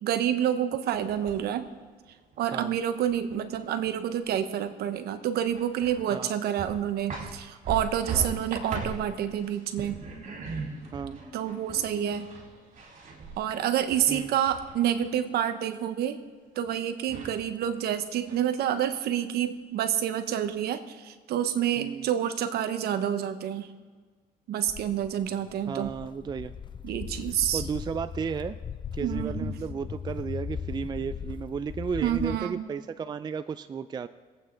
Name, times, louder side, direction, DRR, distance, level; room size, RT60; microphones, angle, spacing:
voice 1, 0.0-1.7 2.4-10.0 11.3-12.3 13.4-16.2 16.5-23.7 24.5-25.9 26.8-27.6 29.0-29.5 32.0-32.7, right 10 dB, 70° right, 9 dB, 1.1 m, -28 dB
sound 1, 0.9-1.7 2.1-4.6 4.9-5.0 5.5-6.3 6.6-15.1 16.7-16.8 17.1-17.9 18.3-18.9, right 4 dB, 50° right, 4.2 m, -40 dB
voice 2, 10.9-11.2 14.1-14.4 17.1-17.3 21.8-22.1 25.7-26.5 27.5-28.6 28.9-34.1, right 6 dB, 25° right, 12 dB, 0.4 m, -34 dB
Walk footsteps, 24.7-32.4, left 7 dB, 30° left, 0.5 m, -38 dB
22.5 x 8.7 x 3.9 m, 1.5 s
cardioid pair, 110°, 17 cm